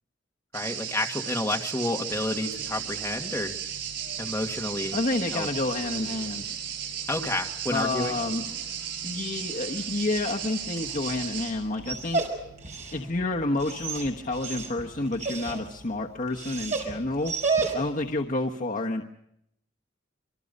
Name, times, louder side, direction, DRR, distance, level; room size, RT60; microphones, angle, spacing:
voice 1, 0.5-3.5 4.2-5.0 5.3-5.5 7.1-8.2, left 1 dB, 15° left, 1 dB, 2.0 m, -30 dB
sound 1, 0.5-11.5, right 8 dB, 85° right, 7.6 m, -35 dB
sound 2, 2.1-15.7, right 1 dB, 60° right, 4.6 m, -53 dB
voice 2, 4.9-6.4 7.7-8.4 9.0-12.2 12.9-17.3 17.7-19.0, left 2 dB, 45° left, 0 dB, 1.3 m, -29 dB
Dog, 9.8-18.1, right 4 dB, 40° right, 5.2 m, -33 dB
28.0 x 24.0 x 5.4 m, 0.74 s
head